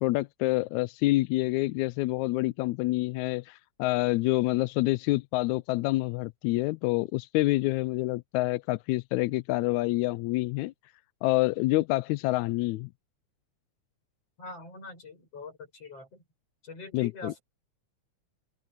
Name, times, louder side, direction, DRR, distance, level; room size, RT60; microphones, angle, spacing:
voice 1, 0.0-10.7 11.2-12.9 16.9-17.3, left 19 dB, 80° left, 1.7 m, -27 dB
voice 2, 14.4-16.2 16.6-17.4, left 3 dB, 50° left, 8.7 m, -44 dB
open air
omnidirectional pair, 3.6 m